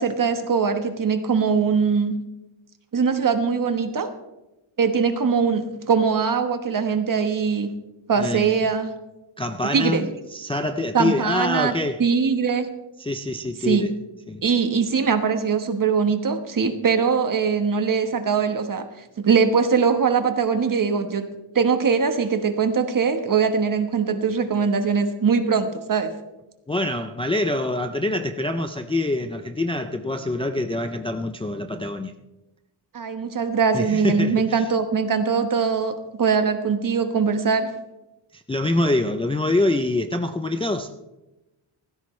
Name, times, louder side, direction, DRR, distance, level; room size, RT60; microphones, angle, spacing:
voice 1, 0.0-2.2 2.9-4.1 4.8-7.7 8.1-8.9 9.7-10.1 10.9-11.7 12.0-12.7 13.6-13.9 14.4-18.8 19.2-21.3 21.5-26.1 32.9-37.7, right 5 dB, 40° right, 7 dB, 1.2 m, -21 dB
voice 2, 8.2-8.6 9.4-12.0 13.0-13.9 14.3-14.4 26.7-32.1 33.7-34.6 38.3-40.9, left 2 dB, 10° left, 6 dB, 0.4 m, -25 dB
17.5 x 14.5 x 3.2 m, 1.0 s
wide cardioid pair, 170°, 49 cm